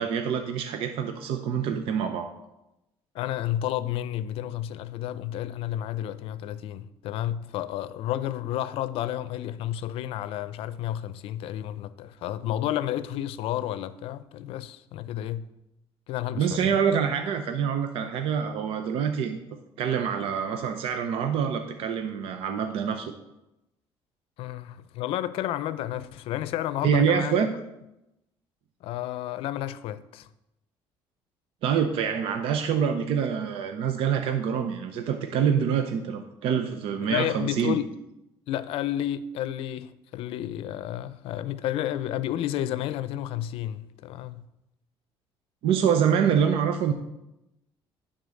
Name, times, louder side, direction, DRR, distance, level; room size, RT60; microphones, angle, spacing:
voice 1, 0.0-2.3 16.4-19.4 19.8-23.1 26.8-27.5 31.6-37.8 45.6-46.9, right 7 dB, 75° right, 0.7 m, -26 dB
voice 2, 3.1-15.5 16.1-16.7 24.4-27.5 28.8-30.3 37.0-37.9 38.5-44.4, left 12 dB, 80° left, 0.5 m, -31 dB
10.5 x 3.9 x 7.0 m
cardioid pair, 120°, 10 cm